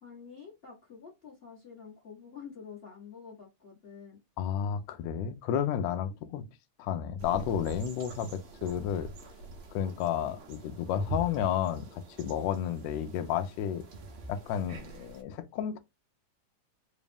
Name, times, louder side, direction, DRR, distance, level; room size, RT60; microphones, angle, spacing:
voice 1, 0.0-4.2, left 6 dB, 60° left, 0.6 m, -48 dB
voice 2, 4.4-6.4 6.8-9.1 9.7-13.8 14.3-15.8, left 9 dB, 80° left, 1.6 m, -32 dB
sound 1, 7.2-15.2, right 5 dB, 70° right, 1.3 m, -43 dB
4.7 x 2.0 x 3.4 m
omnidirectional pair, 3.4 m